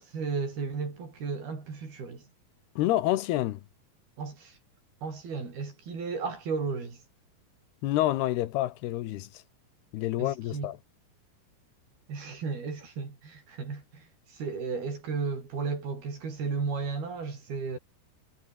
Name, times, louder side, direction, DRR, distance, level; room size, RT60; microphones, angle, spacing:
voice 1, 0.0-2.3 4.2-4.6 5.0-7.0 10.2-10.7 12.1-17.8, right 5 dB, 70° right, 8.3 m, -34 dB
voice 2, 2.8-3.6 7.8-9.3 9.9-10.8, left 15 dB, 85° left, 3.1 m, -28 dB
omnidirectional pair, 4.5 m